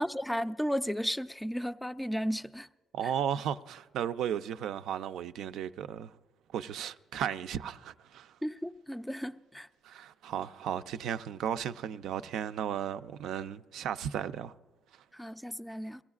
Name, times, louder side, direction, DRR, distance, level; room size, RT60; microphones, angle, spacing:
voice 1, 0.0-2.7 8.4-9.7 15.1-16.0, equal, 5° left, 0.4 m, -34 dB
voice 2, 2.9-6.1 6.5-8.4 9.8-14.6, right 9 dB, 80° right, 0.3 m, -35 dB
23.0 x 16.0 x 2.4 m
cardioid pair, 90°, 0 cm